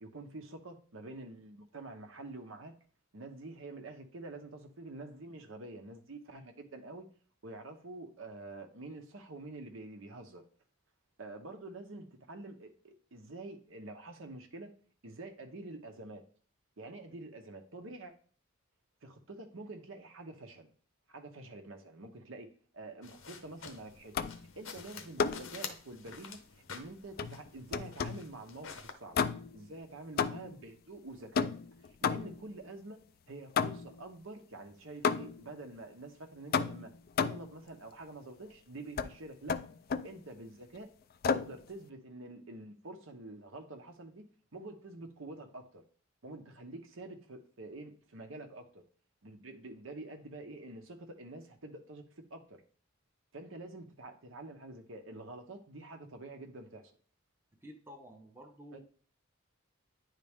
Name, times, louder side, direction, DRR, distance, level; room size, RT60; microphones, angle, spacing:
voice 1, 0.0-2.8 3.1-7.1 7.4-10.4 11.2-14.7 15.0-16.2 16.8-18.1 19.0-20.7 21.1-24.2 24.5-26.4 26.7-29.2 29.5-31.5 31.8-36.9 37.2-39.6 40.0-40.9 41.3-44.3 44.5-45.8 46.2-48.8 49.2-52.0 52.3-52.6 53.3-56.9 58.7-58.8, right 2 dB, 70° right, 0.9 m, -47 dB
sound 1, 23.0-28.9, left 6 dB, 75° left, 0.9 m, -48 dB
sound 2, 24.1-24.5 25.2-25.6 27.2-28.3 29.1-29.7 30.2-30.6 31.3-32.5 33.6-34.0 35.0-35.5 36.5-37.5 39.0-39.1 39.5-40.1 41.2-41.6, left 6 dB, 45° left, 0.3 m, -32 dB
voice 2, 57.6-58.8, equal, 10° right, 0.8 m, -51 dB
9.7 x 3.8 x 3.5 m
head